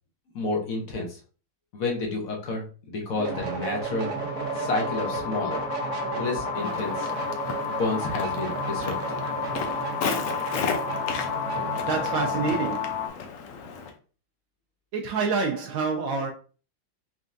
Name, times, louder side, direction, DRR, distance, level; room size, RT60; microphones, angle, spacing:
voice 1, 0.3-1.1 1.7-4.1 4.6-5.6 6.1-7.1 7.6-9.2, left 2 dB, 55° left, 1.1 m, -30 dB
Scratchy Guitar Sample, 3.2-12.8, right 5 dB, 60° right, 1.2 m, -34 dB
sound 1, 3.3-13.1, left 8 dB, 70° left, 1.2 m, -32 dB
Walk footsteps, 6.5-13.9, left 5 dB, 90° left, 0.7 m, -35 dB
voice 2, 11.8-13.0 14.9-16.3, right 4 dB, 80° right, 1.3 m, -27 dB
4.3 x 3.5 x 2.5 m
omnidirectional pair, 2.2 m